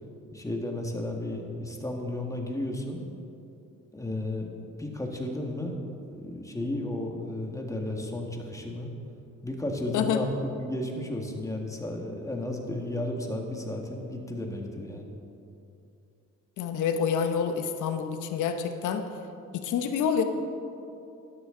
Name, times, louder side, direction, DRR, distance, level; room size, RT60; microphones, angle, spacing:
voice 1, 0.3-3.1 3.9-4.5 4.8-5.8 6.1-8.9 9.4-10.3 10.6-15.1, left 1 dB, 10° left, 1 dB, 1.6 m, -33 dB
voice 2, 16.6-19.1 19.5-20.2, left 7 dB, 80° left, 7 dB, 1.0 m, -27 dB
12.5 x 11.5 x 3.8 m, 2.7 s
cardioid pair, 90°, 30 cm